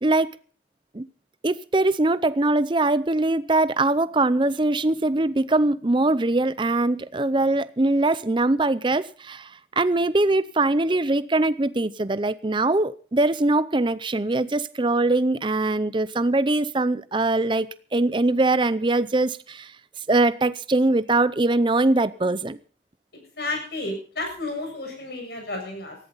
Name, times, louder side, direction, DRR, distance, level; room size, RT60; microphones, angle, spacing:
voice 1, 1.4-19.7 20.1-22.6, right 2 dB, 25° right, 0.6 m, -22 dB
voice 2, 23.4-26.0, left 2 dB, 65° left, 7.5 m, -31 dB
19.0 x 15.0 x 4.0 m
head